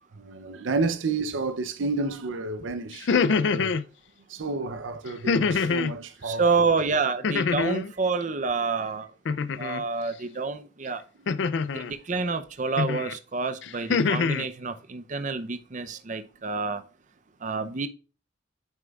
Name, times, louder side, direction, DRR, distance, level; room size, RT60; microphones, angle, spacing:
voice 1, 0.2-3.8 4.3-6.4, right 3 dB, 80° right, 0.6 m, -30 dB
sound 1, 2.9-3.8 5.3-6.0 7.2-7.9 9.3-9.8 11.3-11.9 12.8-13.1 13.6-14.5, left 5 dB, 70° left, 0.4 m, -25 dB
voice 2, 6.2-9.1 9.6-11.0 11.7-16.8 17.4-17.9, right 4 dB, 40° right, 0.6 m, -28 dB
9.0 x 6.6 x 2.4 m
head